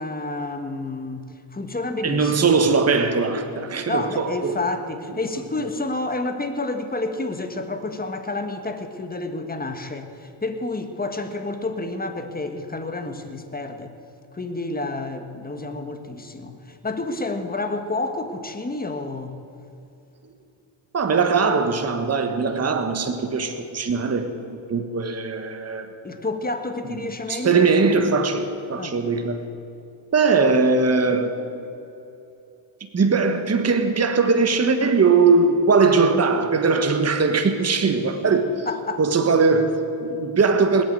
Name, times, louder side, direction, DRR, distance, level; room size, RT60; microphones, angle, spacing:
voice 1, 0.0-2.5 3.9-13.9 14.3-19.3 26.0-27.7 28.7-29.0 38.6-39.0, left 2 dB, 20° left, 7 dB, 1.7 m, -29 dB
voice 2, 2.0-4.6 20.9-24.3 24.7-25.9 27.3-29.4 30.1-31.4 32.9-38.7 39.0-40.8, right 4 dB, 30° right, 7 dB, 1.4 m, -20 dB
19.5 x 9.0 x 7.9 m, 2.8 s
cardioid pair, 80°, 47 cm